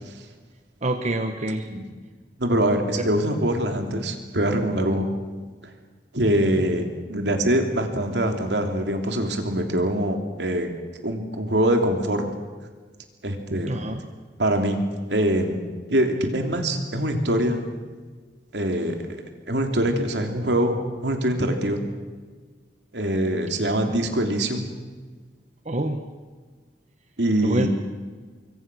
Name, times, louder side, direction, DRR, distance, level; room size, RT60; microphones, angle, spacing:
voice 1, 0.8-1.7 3.0-3.1 13.7-14.0 23.6-23.8 25.6-26.0 27.4-27.7, right 2 dB, 40° right, 6 dB, 1.3 m, -27 dB
voice 2, 2.4-5.1 6.1-10.7 11.0-12.2 13.2-13.7 14.4-14.8 15.1-15.6 15.9-17.7 18.5-19.0 19.5-21.8 22.9-24.7 27.2-27.7, right 1 dB, 75° right, 4 dB, 3.2 m, -23 dB
25.5 x 23.0 x 6.3 m, 1.4 s
head